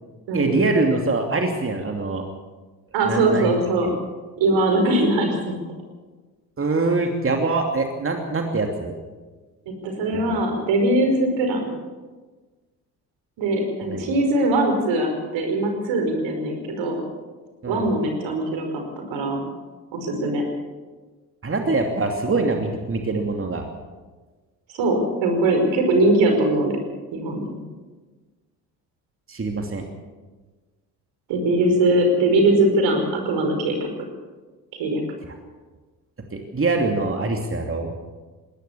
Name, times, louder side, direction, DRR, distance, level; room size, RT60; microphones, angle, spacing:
voice 1, 0.3-2.2 3.1-3.5 6.6-9.0 10.1-10.4 13.8-14.0 17.6-17.9 21.4-23.7 29.3-29.8 36.3-37.9, right 3 dB, 25° right, 3 dB, 2.8 m, -24 dB
voice 2, 2.9-3.9 4.4-5.6 9.7-11.7 13.4-17.0 17.7-18.7 19.1-19.4 19.9-20.4 24.7-26.8 27.1-27.6 31.3-33.9 34.8-35.0, right 2 dB, 65° right, 4 dB, 5.2 m, -21 dB
21.0 x 17.5 x 7.1 m, 1.3 s
hypercardioid pair, 50°, 48 cm